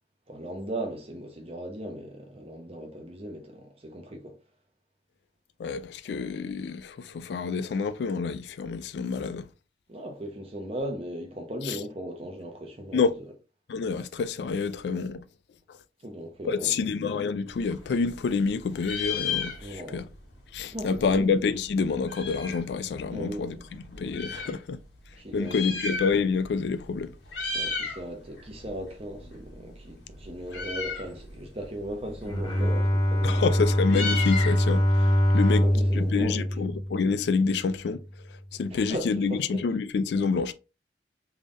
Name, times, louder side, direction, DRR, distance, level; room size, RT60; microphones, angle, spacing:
voice 1, 0.3-4.4 9.9-13.0 16.0-16.9 19.6-20.0 20.7-21.3 23.1-23.6 25.2-25.6 27.5-33.6 35.5-36.7 38.7-39.6 40.1-40.3, right 1 dB, 35° right, 0.9 m, -37 dB
voice 2, 5.6-9.5 11.6-11.8 12.9-13.1 13.7-15.2 16.4-20.0 20.5-23.6 23.9-24.8 25.3-27.1 33.2-35.7 35.9-38.0 38.5-40.5, left 5 dB, 65° left, 0.3 m, -28 dB
Meow, 17.5-18.5 18.7-20.0 20.3-20.4 20.6-22.7 23.3-24.5 25.3-26.5 26.8-27.0 27.3-28.0 28.4-36.2, left 4 dB, 85° left, 1.7 m, -35 dB
Bowed string instrument, 32.2-37.5, equal, 25° left, 0.9 m, -24 dB
3.6 x 3.4 x 2.5 m
head